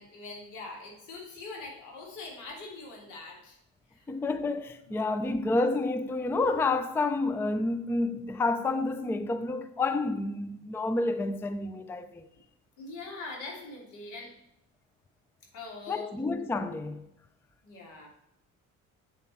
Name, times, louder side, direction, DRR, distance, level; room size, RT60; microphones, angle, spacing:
voice 1, 0.0-3.6 3.9-4.1 4.9-5.0 12.8-14.3 15.5-16.1 17.6-18.1, left 3 dB, 90° left, 3.1 m, -43 dB
voice 2, 4.1-12.3 15.9-17.1, left 2 dB, 10° left, 0.4 m, -29 dB
8.3 x 7.1 x 4.4 m
cardioid pair, 135°, 29 cm